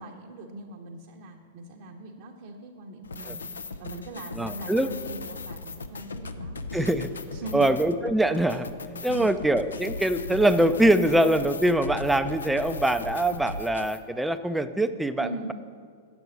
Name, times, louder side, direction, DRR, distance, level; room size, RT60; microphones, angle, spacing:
voice 1, 0.0-3.4 3.8-6.6 7.3-7.7 9.0-9.4 15.2-15.5, right 1 dB, 55° right, 0 dB, 0.9 m, -40 dB
sound 1, 3.0-14.0, left 3 dB, 80° left, 0.5 m, -38 dB
voice 2, 4.4-4.9 6.7-7.1 7.5-8.7 9.0-15.5, right 1 dB, 5° right, 10 dB, 0.4 m, -23 dB
7.7 x 6.1 x 6.9 m, 2.1 s
hypercardioid pair, 105°, 0 cm